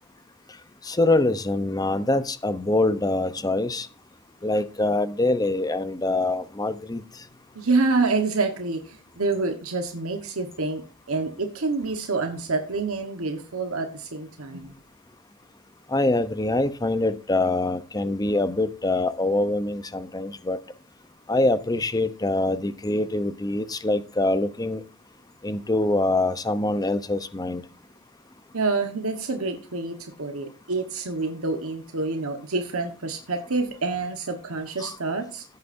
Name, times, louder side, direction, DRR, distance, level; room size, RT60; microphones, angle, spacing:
voice 1, 0.8-3.9 4.4-7.2 15.9-20.6 21.3-24.8 25.4-27.6 34.8-34.9, left 2 dB, 20° left, 12 dB, 0.7 m, -24 dB
voice 2, 7.5-10.8 11.1-14.7 28.5-35.4, right 3 dB, 85° right, 5 dB, 1.3 m, -27 dB
16.0 x 8.0 x 2.7 m, 0.36 s
head